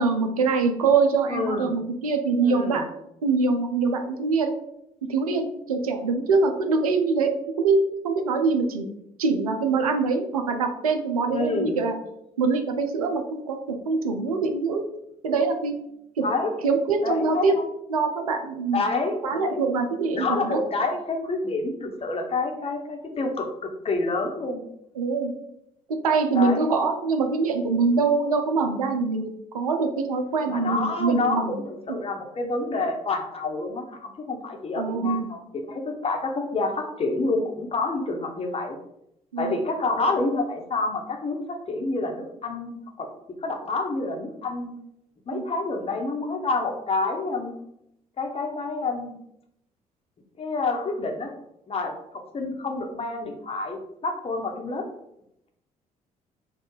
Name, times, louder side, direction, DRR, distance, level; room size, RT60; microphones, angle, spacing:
voice 1, 0.0-2.9 3.2-4.5 5.1-8.9 9.2-12.0 12.4-14.9 15.2-15.8 16.2-16.3 16.6-17.6 17.9-18.8 19.2-20.6 25.0-25.3 25.9-31.5 34.8-35.3 39.3-39.5 45.3-45.4, right 4 dB, 80° right, 6 dB, 0.4 m, -24 dB
voice 2, 1.3-1.7 2.4-2.9 11.3-11.8 16.2-16.6 17.0-17.7 18.7-19.6 20.1-23.5 23.8-24.6 26.3-26.7 30.5-38.8 39.4-43.1 43.4-44.7 45.3-47.5 48.2-49.2 50.4-51.3 51.7-54.8, left 3 dB, 30° left, 3 dB, 0.9 m, -28 dB
4.2 x 2.3 x 4.7 m, 0.79 s
figure-of-eight pair, 45°, 18 cm